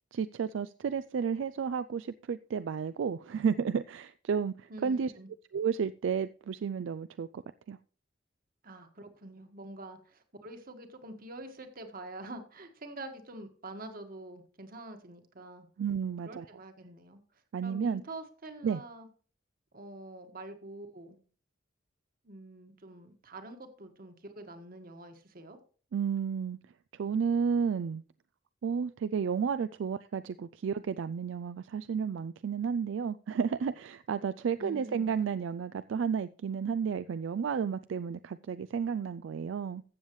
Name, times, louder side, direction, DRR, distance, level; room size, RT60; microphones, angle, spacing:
voice 1, 0.1-5.1 5.5-7.4 7.7-7.8 15.8-16.5 17.5-18.0 18.6-18.8 25.9-26.6 26.9-28.0 28.6-39.8, right 6 dB, 75° right, 0.3 m, -32 dB
voice 2, 4.7-5.3 8.6-15.7 16.2-17.2 17.6-19.1 19.7-21.2 22.2-25.6 34.6-35.1, right 2 dB, 50° right, 1.6 m, -46 dB
14.5 x 7.2 x 3.1 m
head